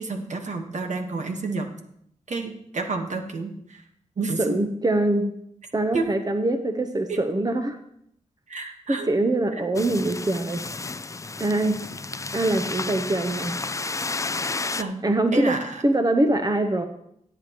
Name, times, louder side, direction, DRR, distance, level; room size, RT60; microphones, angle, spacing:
voice 1, 0.0-1.7 2.3-3.8 4.2-4.5 5.9-6.0 7.1-7.2 8.5-9.1 14.7-15.0 15.3-15.8, right 3 dB, 65° right, 4 dB, 1.5 m, -29 dB
voice 2, 4.4-5.3 5.7-7.8 8.9-10.6 11.4-11.8 12.3-13.6 15.0-15.6 15.8-16.8, right 2 dB, 30° right, 7 dB, 0.9 m, -23 dB
sound 1, 9.8-14.8, left 3 dB, 25° left, 0.4 m, -32 dB
17.5 x 7.9 x 3.1 m, 0.73 s
cardioid pair, 55°, 13 cm